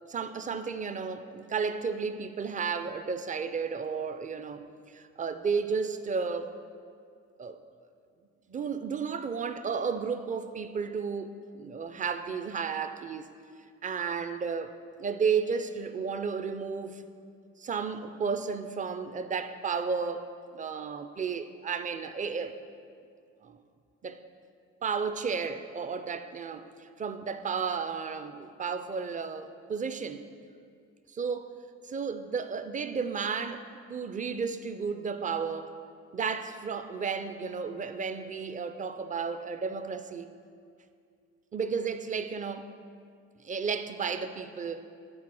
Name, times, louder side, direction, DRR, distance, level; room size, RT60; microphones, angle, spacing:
voice 1, 0.1-6.5 7.4-7.6 8.5-13.3 13.8-14.7 15.0-17.0 17.6-20.3 20.5-22.6 23.4-23.6 24.0-24.2 24.8-30.3 31.1-31.5 31.8-35.7 36.1-40.3 41.5-42.7 43.4-44.8, right 5 dB, 25° right, 0.4 m, -33 dB
8.6 x 4.2 x 6.2 m
cardioid pair, 90°, 30 cm